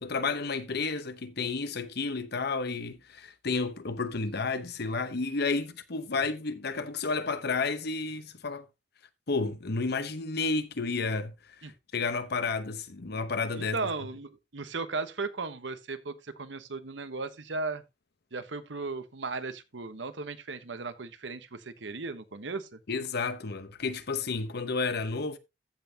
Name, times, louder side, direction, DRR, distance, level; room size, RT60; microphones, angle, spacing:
voice 1, 0.0-8.7 9.3-11.4 11.9-13.8 22.9-25.4, left 4 dB, 60° left, 0.9 m, -31 dB
voice 2, 13.6-17.8 18.3-22.8, right 3 dB, 70° right, 1.1 m, -36 dB
14.5 x 5.8 x 2.8 m
head